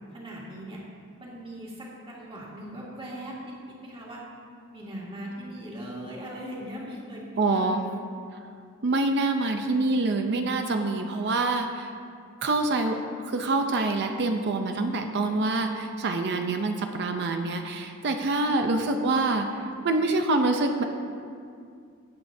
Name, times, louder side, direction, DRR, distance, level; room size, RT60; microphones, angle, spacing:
voice 1, 0.1-0.8 1.2-4.2 4.7-7.8 18.3-18.7, equal, 25° right, -5 dB, 2.1 m, -40 dB
voice 2, 7.4-7.8 8.8-11.9 12.4-13.0 13.2-20.8, right 2 dB, 50° right, 5 dB, 0.6 m, -26 dB
17.5 x 8.1 x 2.7 m, 2.3 s
head